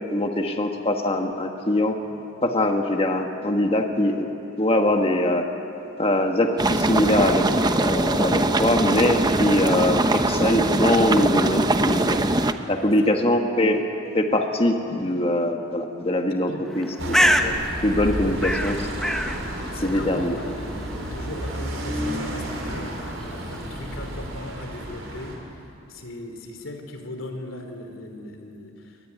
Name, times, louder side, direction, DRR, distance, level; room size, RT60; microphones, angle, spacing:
voice 1, 0.1-1.9 2.4-4.3 4.6-5.4 6.0-12.2 12.7-13.8 14.1-17.5 17.8-18.9 19.7-20.4, left 1 dB, 30° left, 4 dB, 1.5 m, -22 dB
sound 1, 6.6-12.5, right 2 dB, 20° right, 0.9 m, -22 dB
voice 2, 12.6-13.1 16.3-16.7 18.1-18.3 19.7-29.0, left 1 dB, 85° left, 5 dB, 3.3 m, -38 dB
Bird, 16.7-24.3, equal, ahead, 1.1 m, -28 dB
sound 2, 17.0-25.4, right 1 dB, 80° right, 4.6 m, -32 dB
23.0 x 20.5 x 9.5 m, 3.0 s
head